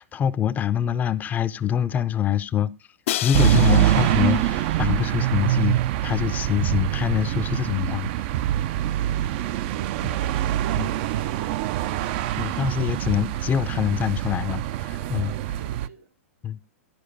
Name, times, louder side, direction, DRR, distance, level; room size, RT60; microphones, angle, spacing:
voice 1, 0.0-2.7 3.2-8.1 12.4-15.3 16.4-16.6, left 9 dB, 20° left, 0.5 m, -25 dB
Crash cymbal, 3.1-5.1, left 13 dB, 65° left, 0.6 m, -32 dB
sound 1, 3.3-15.9, right 13 dB, 50° right, 0.5 m, -24 dB
voice 2, 15.5-16.2, right 6 dB, 85° right, 2.0 m, -48 dB
12.0 x 4.6 x 6.6 m
hypercardioid pair, 120°, 8 cm